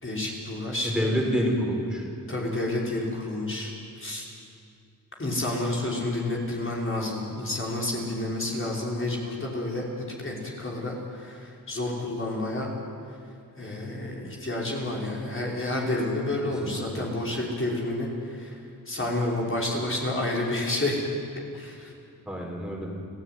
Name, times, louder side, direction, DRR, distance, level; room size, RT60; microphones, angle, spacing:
voice 1, 0.0-0.9 2.3-3.7 4.0-4.3 5.2-9.9 10.2-12.7 13.6-18.5 18.9-21.0 21.6-21.9, left 2 dB, 35° left, -3 dB, 5.7 m, -30 dB
voice 2, 0.8-2.0 16.4-17.0 22.3-22.9, equal, ahead, -1 dB, 5.1 m, -28 dB
30.0 x 16.0 x 9.5 m, 2.4 s
wide cardioid pair, 80°, 35 cm